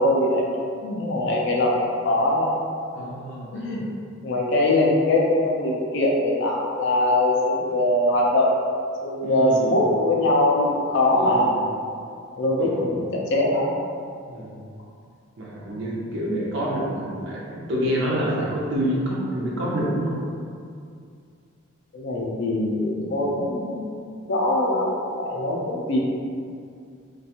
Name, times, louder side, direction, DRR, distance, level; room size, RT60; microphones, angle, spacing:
voice 1, 0.0-2.5 3.5-3.8 4.2-8.5 9.0-11.6 12.4-13.7 21.9-26.0, left 1 dB, 55° left, -3 dB, 0.4 m, -22 dB
voice 2, 2.9-3.8 7.6-7.7 9.2-9.8 11.1-11.6 12.6-12.8 14.3-14.7 15.4-20.2, equal, 55° right, -5 dB, 0.5 m, -28 dB
2.4 x 2.2 x 2.7 m, 2.3 s
head